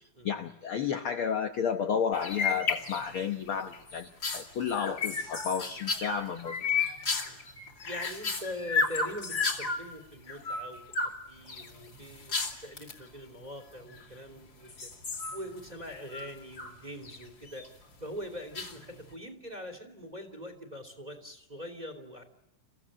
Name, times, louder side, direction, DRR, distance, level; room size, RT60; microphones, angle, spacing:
voice 1, 0.2-6.6, left 7 dB, 55° left, 6 dB, 1.5 m, -32 dB
sound 1, 2.1-3.3 3.7-9.8 10.3-11.2 11.5-13.0 13.8-14.3 14.7-16.7 17.1-17.7 18.5-19.1, left 4 dB, 30° left, 2.8 m, -33 dB
voice 2, 7.8-10.8 11.3-12.4 12.6-14.9 15.3-17.7 18.0-22.2, equal, 15° right, 8 dB, 2.7 m, -42 dB
30.0 x 16.0 x 8.9 m, 0.90 s
omnidirectional pair, 3.7 m